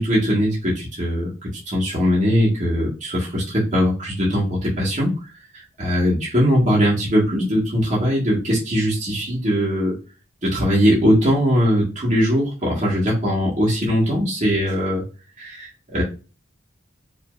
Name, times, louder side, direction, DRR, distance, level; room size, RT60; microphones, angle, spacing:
voice 1, 0.0-5.1 5.5-9.9 10.4-15.0 15.4-16.0, equal, 40° right, -6 dB, 1.6 m, -20 dB
4.9 x 3.2 x 2.5 m, 0.34 s
head